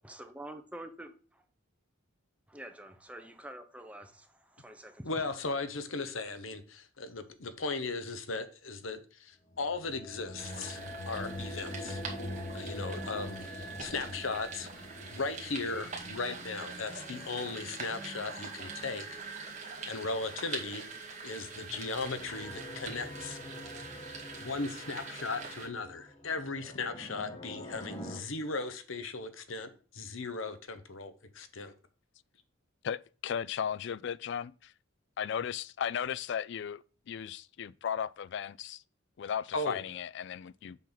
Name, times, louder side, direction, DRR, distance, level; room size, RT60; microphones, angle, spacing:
voice 1, 0.0-1.1 2.5-5.2, right 1 dB, 5° right, 0.7 m, -47 dB
voice 2, 5.0-10.8 11.1-12.0 12.5-19.5 19.9-23.5 24.4-31.7 39.5-39.8, left 3 dB, 80° left, 1.0 m, -37 dB
sound 1, 9.5-20.2 21.4-28.2, left 1 dB, 25° left, 1.4 m, -45 dB
sound 2, 10.4-25.7, right 4 dB, 35° right, 1.9 m, -44 dB
voice 3, 32.8-34.7 35.2-38.8 39.2-40.8, left 8 dB, 60° left, 0.3 m, -36 dB
7.5 x 5.8 x 3.9 m
head